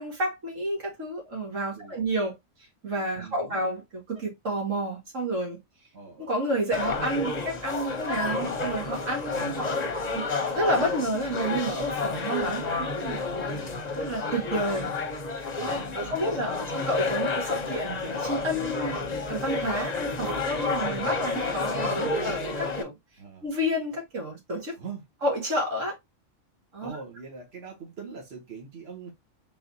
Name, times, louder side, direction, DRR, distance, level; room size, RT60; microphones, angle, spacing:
voice 1, 0.0-2.3 2.8-3.8 4.1-5.6 6.2-9.8 10.1-10.3 10.6-13.2 14.0-14.9 15.6-22.9 23.4-24.8 25.2-26.0 26.7-26.9, right 1 dB, 85° right, 2.2 m, -30 dB
voice 2, 3.2-3.6 5.9-6.3 8.3-8.5 9.3-10.0 13.5-13.8 15.6-16.7 21.7-22.1 23.2-23.5 24.8-25.0 26.8-29.1, right 5 dB, 55° right, 1.9 m, -43 dB
sound 1, 6.7-22.8, left 3 dB, 40° left, 0.8 m, -30 dB
4.1 x 3.8 x 2.7 m
omnidirectional pair, 1.3 m